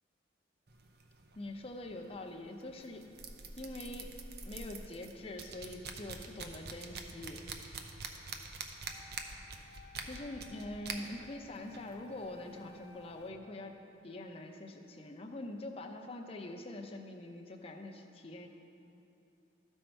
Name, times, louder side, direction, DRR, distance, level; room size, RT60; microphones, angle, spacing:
sound 1, 0.7-13.3, right 4 dB, 60° right, 0.7 m, -47 dB
voice 1, 1.4-3.1 3.6-7.4 10.0-13.8 14.0-18.5, left 1 dB, 30° left, 3 dB, 0.7 m, -44 dB
Wind instrument woodwind instrument, 8.8-13.9, left 4 dB, 15° right, 1.1 m, -60 dB
13.5 x 5.4 x 4.5 m, 2.8 s
head